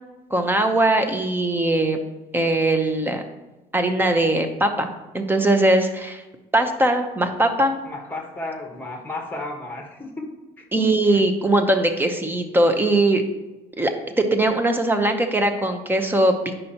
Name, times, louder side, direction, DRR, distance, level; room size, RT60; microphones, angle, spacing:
voice 1, 0.3-2.0 2.3-3.2 3.7-4.9 5.1-6.2 6.5-7.8 10.7-13.2 13.8-13.9 14.2-16.5, right 1 dB, 10° right, 6 dB, 0.8 m, -20 dB
voice 2, 7.8-10.3 10.6-11.2, left 1 dB, 10° left, 2 dB, 1.3 m, -33 dB
9.2 x 5.4 x 2.9 m, 1.1 s
cardioid pair, 110°, 17 cm